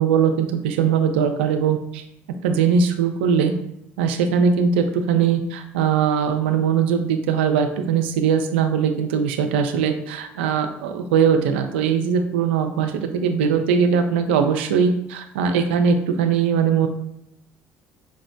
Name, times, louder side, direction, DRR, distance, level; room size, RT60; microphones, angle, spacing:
voice 1, 0.0-2.0 2.4-3.5 4.0-16.9, right 6 dB, 85° right, 5 dB, 0.4 m, -20 dB
5.0 x 2.0 x 2.7 m, 0.76 s
hypercardioid pair, 65°, 6 cm